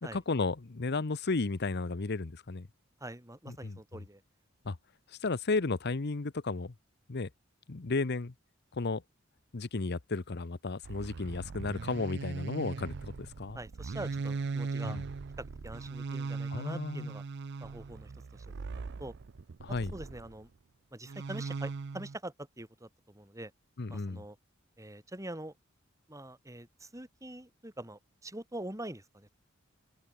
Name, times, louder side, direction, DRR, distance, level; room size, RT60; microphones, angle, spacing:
voice 1, 0.1-2.7 3.5-3.8 4.6-4.8 5.2-6.7 7.1-7.3 7.7-8.3 8.7-9.0 9.5-13.6 14.8-15.0 16.5-17.1 19.6-19.9 23.8-24.2, left 3 dB, 55° left, 0.8 m, -33 dB
voice 2, 3.0-4.2 13.5-15.0 15.4-17.2 17.6-19.1 19.9-20.5 20.9-23.5 23.9-24.4 24.8-25.5 26.1-29.3, right 1 dB, 15° right, 4.5 m, -44 dB
sound 1, 10.8-20.4 21.1-22.2, right 4 dB, 55° right, 0.5 m, -39 dB
open air
head